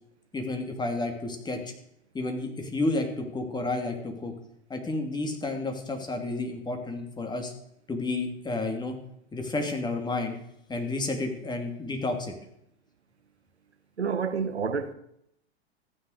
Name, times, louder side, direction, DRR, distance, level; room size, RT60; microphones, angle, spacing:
voice 1, 0.3-1.6 2.1-4.3 4.7-7.5 7.9-9.0 9.3-10.4 10.7-12.3, left 2 dB, 15° left, 2.9 m, -31 dB
voice 2, 14.0-14.9, right 6 dB, 90° right, 1.1 m, -28 dB
14.5 x 10.0 x 6.6 m
hypercardioid pair, 100°, 32 cm